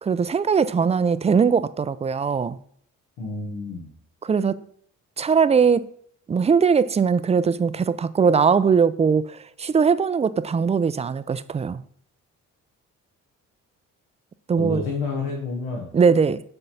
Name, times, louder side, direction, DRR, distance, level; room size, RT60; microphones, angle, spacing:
voice 1, 0.0-2.6 4.2-4.6 5.2-5.9 6.3-11.8 14.5-14.8 15.9-16.4, right 6 dB, 20° right, 0.3 m, -20 dB
voice 2, 3.2-3.9 14.6-15.9, left 4 dB, 85° left, 1.3 m, -29 dB
5.6 x 3.9 x 5.6 m
supercardioid pair, 60°, 35 cm